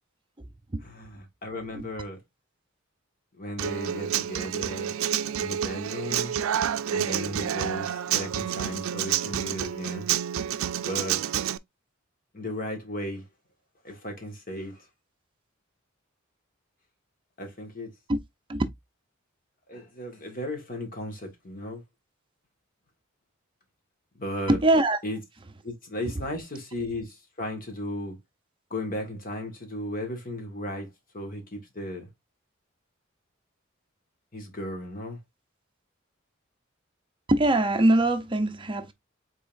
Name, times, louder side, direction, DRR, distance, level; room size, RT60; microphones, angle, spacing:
voice 1, 0.8-2.2 3.4-4.9 5.4-6.3 6.9-10.1 10.8-11.2 12.3-13.2 13.8-14.8 17.4-17.9 19.7-21.8 24.2-24.6 25.0-25.2 25.6-28.2 28.7-30.9 31.1-32.1 34.3-35.2, left 1 dB, 45° left, 1.7 m, -35 dB
Human voice / Acoustic guitar, 3.6-11.6, right 10 dB, 90° right, 0.4 m, -29 dB
voice 2, 24.5-25.0 37.3-38.9, right 1 dB, 25° right, 0.6 m, -22 dB
5.3 x 3.9 x 2.5 m
head